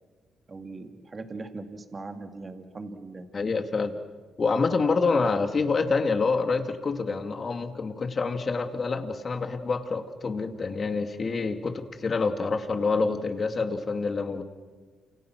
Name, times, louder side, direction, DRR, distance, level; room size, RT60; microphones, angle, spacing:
voice 1, 0.5-3.3 5.3-5.4, right 3 dB, 30° right, 6 dB, 2.6 m, -40 dB
voice 2, 3.3-4.0 4.4-14.4, left 4 dB, 40° left, 7 dB, 2.5 m, -27 dB
29.0 x 27.0 x 6.3 m, 1.4 s
cardioid pair, 90°, 0 cm